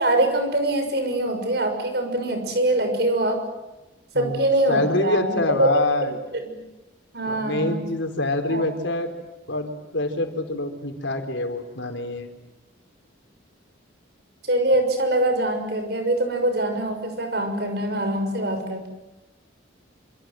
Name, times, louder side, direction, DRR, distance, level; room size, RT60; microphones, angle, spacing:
voice 1, 0.0-3.4 4.1-5.7 6.3-6.4 7.1-7.8 8.5-8.6 14.5-18.9, right 1 dB, 55° right, 6 dB, 6.4 m, -23 dB
voice 2, 4.7-6.2 7.2-9.1 9.5-12.3, left 2 dB, 75° left, 5 dB, 4.3 m, -25 dB
27.0 x 26.5 x 7.8 m, 1.0 s
head